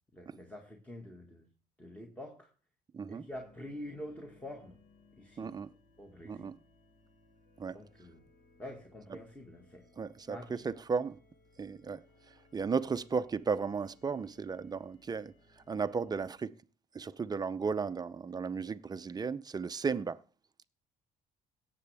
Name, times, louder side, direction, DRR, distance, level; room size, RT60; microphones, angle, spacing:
voice 1, 0.1-1.5 1.8-2.5 3.1-4.8 5.2-5.5 6.0-6.5 7.7-8.2 8.6-9.9 10.3-10.6, left 1 dB, 10° left, 1.8 m, -46 dB
voice 2, 2.9-3.3 5.4-5.7 6.2-6.6 7.6-7.8 10.0-11.2 11.6-16.5 16.9-20.2, right 5 dB, 25° right, 0.6 m, -35 dB
sound 1, 3.3-16.3, left 3 dB, 50° left, 1.8 m, -65 dB
17.0 x 7.6 x 3.4 m
cardioid pair, 110°, 17 cm